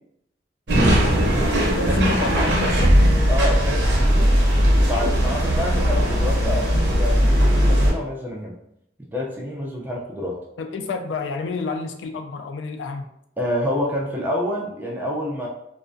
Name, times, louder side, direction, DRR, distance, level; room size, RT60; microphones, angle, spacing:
sound 1, 0.7-7.9, equal, 70° right, 0.7 m, -18 dB
voice 1, 1.8-3.0 10.6-13.1, left 4 dB, 75° left, 6 dB, 0.3 m, -29 dB
voice 2, 3.3-4.4 4.7-8.6 9.1-10.4 13.4-15.5, left 1 dB, 10° right, -2 dB, 0.3 m, -27 dB
2.3 x 2.1 x 2.5 m, 0.77 s
head